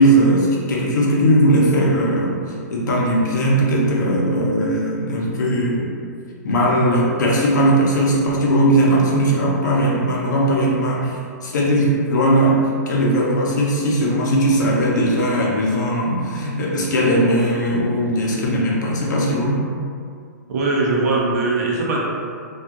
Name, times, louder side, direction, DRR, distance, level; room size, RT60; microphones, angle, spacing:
voice 1, 0.0-2.3 2.7-5.9 6.4-19.6, right 1 dB, 75° left, -3 dB, 0.7 m, -18 dB
voice 2, 20.5-22.0, right 3 dB, 60° right, -3 dB, 0.6 m, -20 dB
2.6 x 2.4 x 2.4 m, 2.2 s
hypercardioid pair, 135°, 10 cm